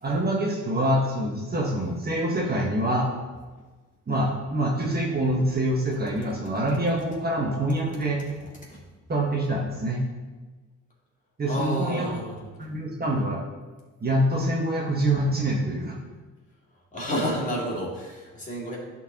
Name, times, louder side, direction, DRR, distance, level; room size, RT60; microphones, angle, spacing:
voice 1, 0.0-3.1 4.1-8.2 9.1-10.0 11.4-12.2 12.6-13.4 14.0-16.0, right 1 dB, 30° right, -2 dB, 1.4 m, -25 dB
voice 2, 11.4-12.5 16.9-18.8, equal, 25° left, -4 dB, 2.4 m, -30 dB
11.5 x 4.6 x 3.0 m, 1.3 s
cardioid pair, 90°, 30 cm